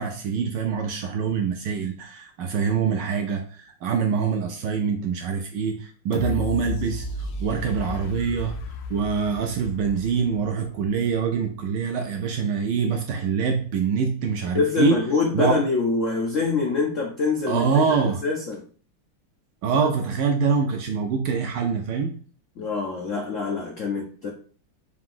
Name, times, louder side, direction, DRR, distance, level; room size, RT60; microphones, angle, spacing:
voice 1, 0.0-8.5 8.9-15.0 15.3-15.6 17.5-18.2 19.6-22.1, right 6 dB, 75° right, 4 dB, 1.0 m, -25 dB
sound 1, 6.1-11.0 11.5-11.6, left 4 dB, 70° left, 1.1 m, -33 dB
voice 2, 14.5-18.6 22.6-24.3, left 4 dB, 90° left, -1 dB, 0.6 m, -25 dB
4.8 x 2.5 x 3.7 m, 0.43 s
omnidirectional pair, 2.3 m